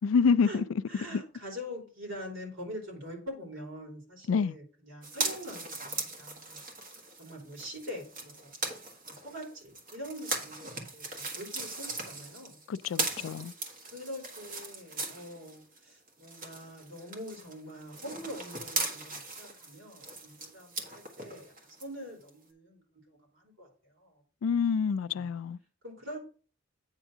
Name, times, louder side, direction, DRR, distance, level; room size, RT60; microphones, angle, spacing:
voice 1, 0.0-0.6 1.1-1.2 4.3-4.5 12.7-13.5 24.4-25.6, left 5 dB, 85° left, 0.4 m, -27 dB
voice 2, 0.9-6.6 7.2-8.6 9.1-12.6 13.9-21.5 21.8-22.8 23.3-24.2 24.9-25.3 25.8-26.2, equal, 80° right, 3.5 m, -44 dB
sound 1, 5.0-15.8 16.1-21.8 22.3-22.4, right 3 dB, 45° right, 1.6 m, -39 dB
9.0 x 3.7 x 6.1 m
head